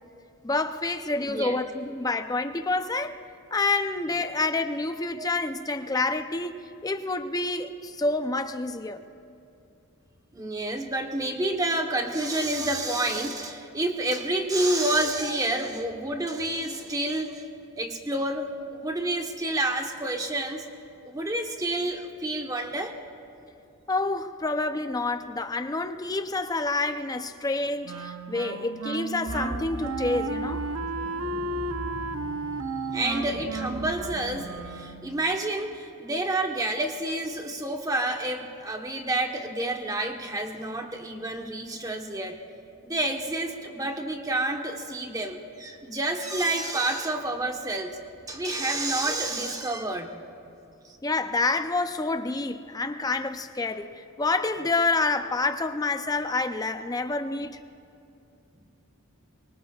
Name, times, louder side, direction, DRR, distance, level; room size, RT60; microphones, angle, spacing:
voice 1, 0.4-3.2 3.5-9.0 23.9-30.7 51.0-53.9 54.2-57.6, left 3 dB, 15° left, 0.5 m, -28 dB
voice 2, 1.2-1.6 5.2-5.3 10.3-17.5 17.8-20.7 21.0-22.9 32.9-42.4 42.8-48.0 48.3-50.1 50.8-51.0, right 1 dB, 15° right, 1.1 m, -29 dB
Wind instrument woodwind instrument, 27.8-35.2, right 3 dB, 75° right, 0.6 m, -33 dB
sound 1, 29.3-34.5, right 1 dB, 50° right, 4.0 m, -39 dB
24.5 x 23.5 x 2.4 m
head